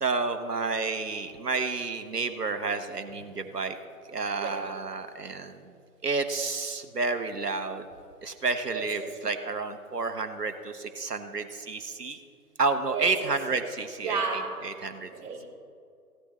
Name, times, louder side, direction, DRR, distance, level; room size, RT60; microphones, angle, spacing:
voice 1, 0.0-3.8 4.1-5.6 6.0-7.8 8.2-12.2 12.6-15.1, right 4 dB, 85° right, 8 dB, 1.3 m, -30 dB
voice 2, 4.3-4.7 8.7-9.2 12.9-13.3 14.0-14.7 15.1-15.5, right 4 dB, 30° right, -6 dB, 3.7 m, -33 dB
16.5 x 13.0 x 3.2 m, 2.3 s
figure-of-eight pair, 145°, 46 cm